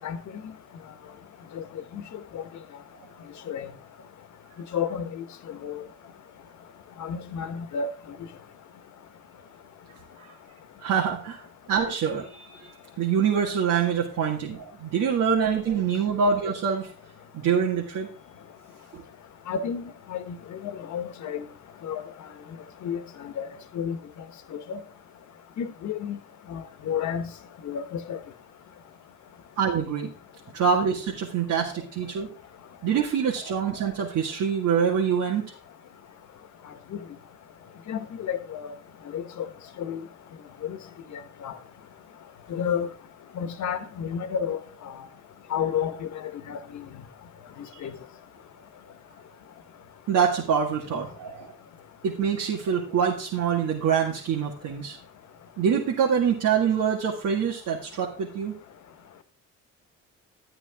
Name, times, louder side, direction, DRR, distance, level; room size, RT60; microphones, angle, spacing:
voice 1, 4.7-5.8 7.0-7.9 19.5-19.8 20.1-21.4 21.8-22.0 22.8-23.5 23.7-24.0 24.7-24.8 25.6-26.2 26.5-27.3 27.6-28.2 37.9-38.7 39.1-39.4 39.8-40.0 40.6-40.8 41.4-41.5 42.5-42.9 43.3-44.6 45.5-46.8 47.8-47.9, left 7 dB, 70° left, 1.4 m, -31 dB
voice 2, 10.8-16.9 17.3-18.1 18.9-19.0 29.6-30.1 30.5-32.3 32.8-35.4 47.7-47.8 50.1-51.5 52.0-55.0 55.6-58.5, right 7 dB, 80° right, 2.1 m, -25 dB
12.5 x 8.9 x 3.6 m
cardioid pair, 90°, 30 cm